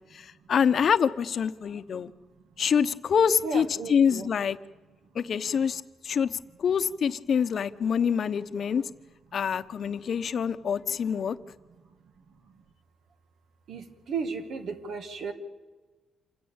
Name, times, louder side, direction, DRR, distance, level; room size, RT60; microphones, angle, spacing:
voice 1, 0.1-2.1 2.6-4.6 5.1-8.9 9.3-11.4, left 7 dB, 55° left, 12 dB, 0.9 m, -26 dB
voice 2, 3.4-4.3 13.7-15.3, right 5 dB, 70° right, 7 dB, 2.1 m, -34 dB
27.5 x 16.0 x 8.9 m, 1.3 s
cardioid pair, 125°, 0 cm